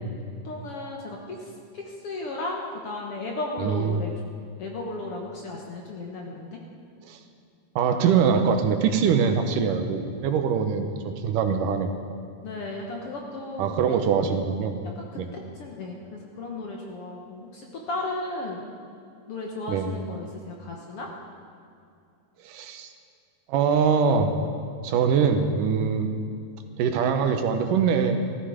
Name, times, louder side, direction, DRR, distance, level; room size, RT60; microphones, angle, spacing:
voice 1, 0.4-4.1 4.6-6.6 12.4-13.6 13.9-14.0 15.0-18.7 19.3-21.1, left 2 dB, 60° left, 0 dB, 1.7 m, -35 dB
voice 2, 3.6-4.0 7.1-7.2 7.8-12.0 13.6-14.8 15.2-15.3 19.7-19.9 22.4-22.9 23.5-24.3 24.8-26.1 26.8-28.2, right 6 dB, 80° right, 7 dB, 2.5 m, -23 dB
15.0 x 14.0 x 5.0 m, 2.4 s
omnidirectional pair, 3.8 m